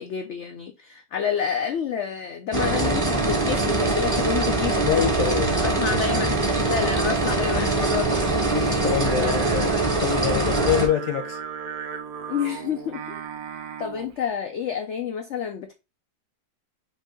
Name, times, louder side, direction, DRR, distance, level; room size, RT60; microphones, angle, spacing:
voice 1, 0.0-4.8 5.6-8.2 12.3-13.2 13.8-15.7, left 7 dB, 85° left, 0.6 m, -29 dB
sound 1, 2.5-10.9, right 2 dB, 25° right, 0.7 m, -23 dB
voice 2, 4.8-5.5 5.9-6.0 7.5-7.7 8.5-9.7 10.0-11.4, left 9 dB, 60° left, 0.9 m, -25 dB
Singing, 9.0-14.2, right 7 dB, 65° right, 1.2 m, -36 dB
4.7 x 2.7 x 3.8 m
omnidirectional pair, 1.9 m